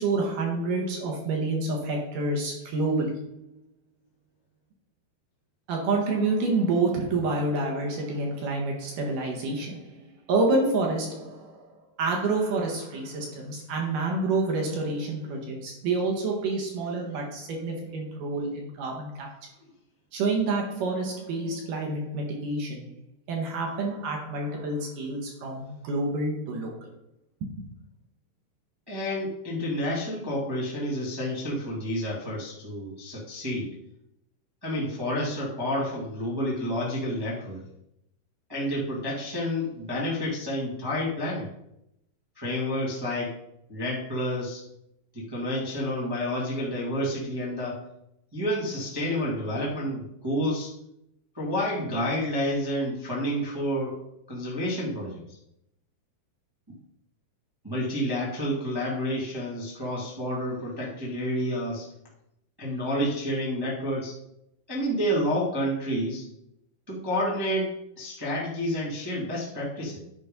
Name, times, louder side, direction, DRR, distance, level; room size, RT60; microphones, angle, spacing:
voice 1, 0.0-3.4 5.7-11.7 12.0-19.3 20.1-22.9 23.3-26.9 27.4-27.6, right 3 dB, 60° right, 0 dB, 2.4 m, -28 dB
voice 2, 28.9-33.7 34.6-37.6 38.5-41.5 42.3-43.4 43.7-44.6 45.1-47.8 48.3-50.7 51.3-54.0 54.3-55.2 56.7-56.8 57.6-61.9 62.6-64.1 64.7-66.2 66.9-70.0, equal, 25° right, -6 dB, 0.4 m, -29 dB
11.0 x 5.2 x 5.3 m, 0.81 s
omnidirectional pair, 5.5 m